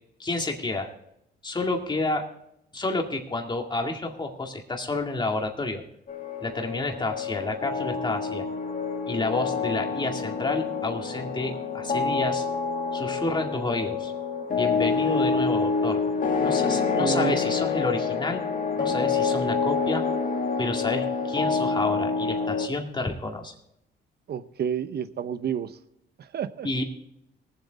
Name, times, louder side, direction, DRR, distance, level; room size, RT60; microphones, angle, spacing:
voice 1, 0.2-0.9 1.4-2.3 2.7-5.8 6.4-8.4 9.1-12.5 12.9-14.1 14.6-16.0 16.4-18.4 18.8-20.0 20.6-23.5 26.6-26.8, left 2 dB, 20° left, 2 dB, 2.1 m, -30 dB
sound 1, 6.1-22.7, left 5 dB, 40° left, 1.7 m, -27 dB
voice 2, 16.9-17.4 24.3-25.8 26.2-26.7, right 7 dB, 55° right, 13 dB, 0.8 m, -29 dB
19.0 x 7.8 x 4.1 m, 0.78 s
cardioid pair, 90°, 20 cm